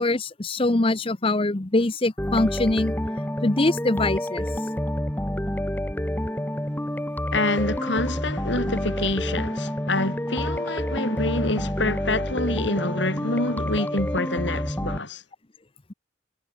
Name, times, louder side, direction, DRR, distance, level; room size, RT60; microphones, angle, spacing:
voice 1, 0.0-3.0 3.4-4.5, left 2 dB, 30° left, 0.8 m, -23 dB
sound 1, 2.2-15.0, equal, 10° left, 1.6 m, -28 dB
voice 2, 7.3-15.2, left 2 dB, 70° left, 4.6 m, -27 dB
head